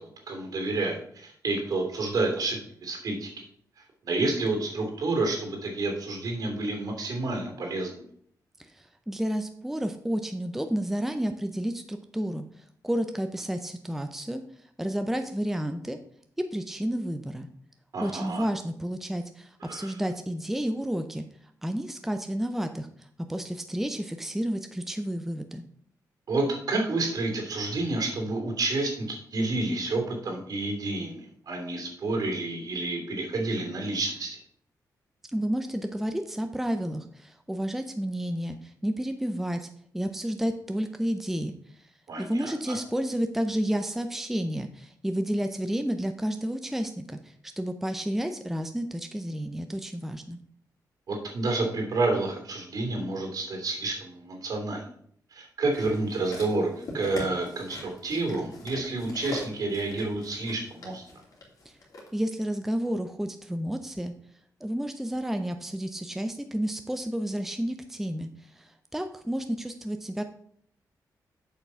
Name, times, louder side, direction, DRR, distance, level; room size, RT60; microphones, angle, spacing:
voice 1, 0.0-3.3 4.0-8.0 17.9-18.5 19.6-20.0 26.3-34.4 42.1-42.7 51.1-54.8 55.3-61.0, right 2 dB, 65° right, 2 dB, 3.1 m, -29 dB
voice 2, 8.6-12.4 12.8-14.4 14.8-16.0 16.5-17.5 18.0-21.3 21.6-25.6 35.3-39.7 39.9-41.5 42.2-50.4 61.7-61.8 62.1-64.1 64.6-70.2, equal, 5° right, 7 dB, 0.6 m, -31 dB
sound 1, 55.7-62.1 62.8-62.9, left 2 dB, 60° left, 2.8 m, -42 dB
7.4 x 5.9 x 5.6 m, 0.63 s
cardioid pair, 105°, 7 cm